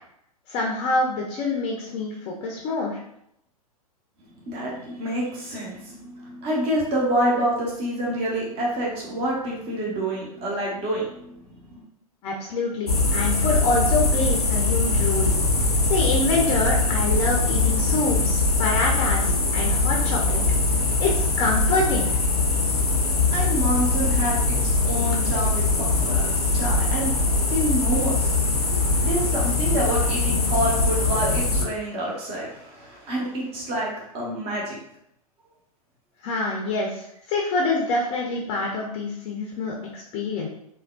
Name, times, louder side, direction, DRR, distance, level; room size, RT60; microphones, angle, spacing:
voice 1, 0.5-3.0 12.2-15.3 15.9-20.4 21.0-22.1 22.7-22.8 36.2-40.5, left 3 dB, 30° left, -1 dB, 0.5 m, -26 dB
voice 2, 4.2-11.8 23.3-28.3 29.0-34.7, right 1 dB, 30° right, -3 dB, 0.7 m, -28 dB
sound 1, 12.9-31.6, left 3 dB, 85° left, 0.5 m, -22 dB
3.4 x 2.1 x 2.2 m, 0.75 s
figure-of-eight pair, 100°, 19 cm